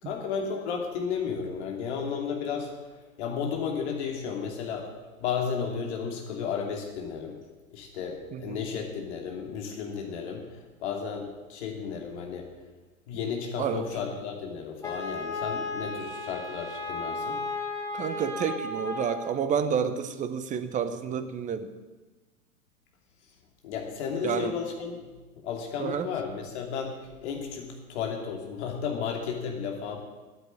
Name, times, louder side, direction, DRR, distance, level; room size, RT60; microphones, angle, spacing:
voice 1, 0.0-2.9 3.2-4.9 5.2-7.4 7.7-10.5 10.8-12.5 13.1-17.4 23.6-30.0, left 6 dB, 50° left, 2 dB, 2.9 m, -33 dB
Wind instrument woodwind instrument, 14.8-19.4, left 3 dB, 5° left, 2.1 m, -34 dB
voice 2, 17.9-21.7 24.2-24.5 25.8-26.1, right 7 dB, 15° right, 10 dB, 0.8 m, -30 dB
9.4 x 9.0 x 9.7 m, 1.2 s
figure-of-eight pair, 100°, 43 cm